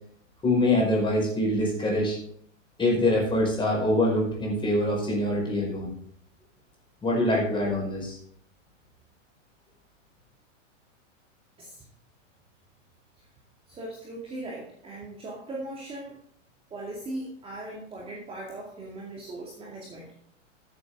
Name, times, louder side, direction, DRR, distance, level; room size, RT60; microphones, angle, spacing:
voice 1, 0.4-2.2 2.8-5.9 7.0-8.2, left 1 dB, 10° left, -2 dB, 5.2 m, -24 dB
voice 2, 13.7-16.2 16.7-20.1, right 1 dB, 15° right, -3 dB, 2.3 m, -39 dB
14.5 x 8.4 x 3.8 m, 0.64 s
hypercardioid pair, 140°, 39 cm